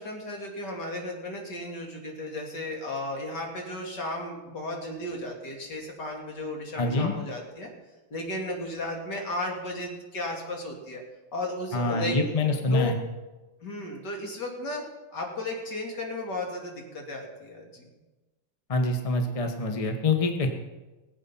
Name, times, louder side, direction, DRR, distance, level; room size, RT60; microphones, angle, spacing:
voice 1, 0.0-7.7 8.1-11.0 11.3-12.2 12.5-12.9 13.6-14.9 15.1-17.9, left 2 dB, 50° left, 1 dB, 2.9 m, -34 dB
voice 2, 6.8-7.1 11.7-13.0 18.7-20.5, left 2 dB, 25° left, 4 dB, 0.8 m, -25 dB
20.0 x 8.2 x 5.6 m, 1.1 s
omnidirectional pair, 2.4 m